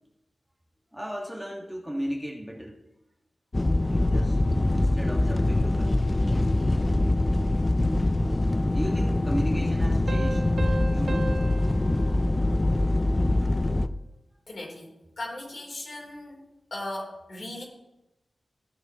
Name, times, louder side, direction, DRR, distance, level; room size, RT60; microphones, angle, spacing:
voice 1, 0.9-2.8 3.8-4.4 4.7-6.4 8.6-10.4 10.8-11.3, equal, 5° right, -1 dB, 1.5 m, -35 dB
sound 1, 3.5-13.9, left 2 dB, 25° left, 0.4 m, -24 dB
Piano, 10.1-13.4, right 3 dB, 90° right, 1.0 m, -37 dB
voice 2, 14.5-14.9 15.2-16.4 16.7-17.6, left 1 dB, 60° left, -2 dB, 3.3 m, -37 dB
15.5 x 6.4 x 2.9 m, 0.92 s
wide cardioid pair, 110°, 0 cm